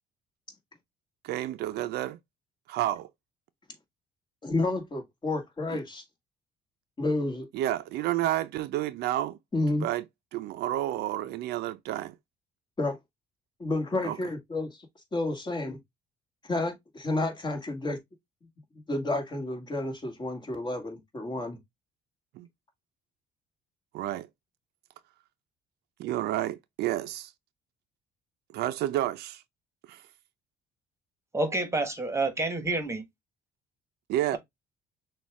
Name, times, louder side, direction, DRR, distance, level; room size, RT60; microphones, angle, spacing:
voice 1, 1.2-2.2 2.7-3.1 7.5-9.4 9.8-10.0 10.3-12.1 14.0-14.2 22.3-22.5 23.9-24.3 26.0-27.3 28.5-29.4 29.9-30.0 34.1-34.4, right 13 dB, 75° right, 0.5 m, -30 dB
voice 2, 4.4-6.0 7.0-7.5 9.5-9.8 12.8-13.0 13.6-14.8 15.1-15.8 16.5-18.0 18.9-21.6, left 2 dB, 25° left, 1.8 m, -30 dB
voice 3, 31.3-33.0, right 2 dB, 15° right, 1.3 m, -28 dB
6.3 x 2.4 x 3.5 m
cardioid pair, 110°, 17 cm